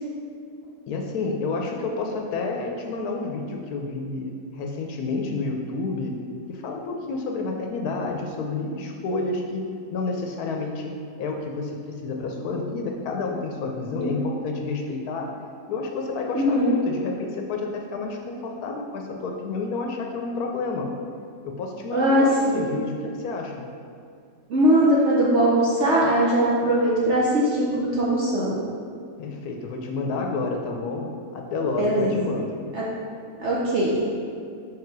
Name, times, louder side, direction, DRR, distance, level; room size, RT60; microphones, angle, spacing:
voice 1, 0.9-6.2 6.5-10.9 11.2-15.3 15.7-20.9 21.4-23.7 29.2-32.7, left 3 dB, 75° left, 2 dB, 1.1 m, -29 dB
voice 2, 13.9-14.3 16.3-16.8 21.9-22.7 24.5-28.6 31.8-32.2 32.7-32.8 33.4-34.0, right 1 dB, 55° right, -6 dB, 0.9 m, -21 dB
5.0 x 4.8 x 4.7 m, 2.3 s
omnidirectional pair, 1.7 m